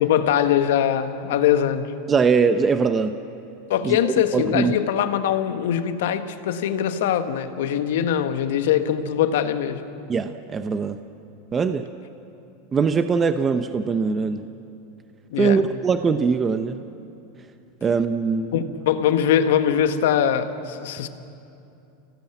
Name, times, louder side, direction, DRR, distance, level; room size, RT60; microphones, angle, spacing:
voice 1, 0.0-1.9 3.7-9.8 15.3-15.6 18.5-21.1, left 9 dB, 75° left, 9 dB, 1.4 m, -22 dB
voice 2, 2.1-3.2 3.8-4.8 10.1-11.0 11.5-11.9 12.7-14.4 15.4-16.8 17.8-18.5, right 5 dB, 25° right, 9 dB, 0.8 m, -22 dB
26.5 x 17.5 x 8.0 m, 2.7 s
hypercardioid pair, 115°, 0 cm